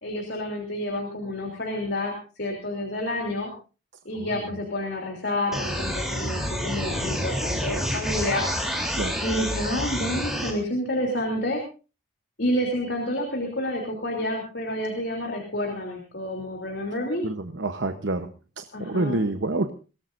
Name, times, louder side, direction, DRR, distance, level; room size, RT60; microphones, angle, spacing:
voice 1, 0.0-3.5 4.0-8.4 9.2-11.6 12.4-17.2 18.7-19.2, left 1 dB, 55° left, 1 dB, 3.2 m, -29 dB
sound 1, 5.5-10.5, equal, ahead, 3.3 m, -28 dB
voice 2, 17.2-18.3 18.6-19.7, right 2 dB, 70° right, 8 dB, 1.0 m, -28 dB
23.0 x 18.0 x 2.6 m, 0.33 s
head